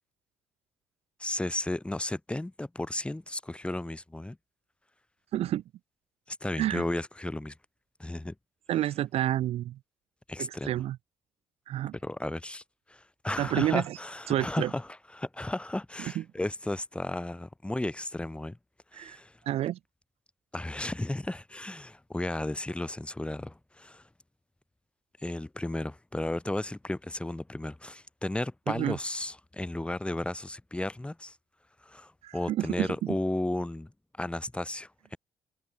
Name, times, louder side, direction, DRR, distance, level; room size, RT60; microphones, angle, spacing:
voice 1, 1.2-4.4 6.3-7.5 8.0-8.3 10.3-10.7 11.9-12.6 12.9-18.6 18.9-19.4 20.5-24.0 25.2-31.4 31.8-33.9 34.2-35.2, left 1 dB, 10° left, 0.9 m, -34 dB
voice 2, 5.3-5.6 6.6-6.8 8.7-9.8 10.4-11.0 11.7-11.9 13.4-14.0 14.3-14.7 16.2-16.3 18.9-19.2 19.5-19.8 28.7-29.0 32.2-32.9, right 13 dB, 70° right, 0.5 m, -29 dB
open air
cardioid pair, 80°, 11 cm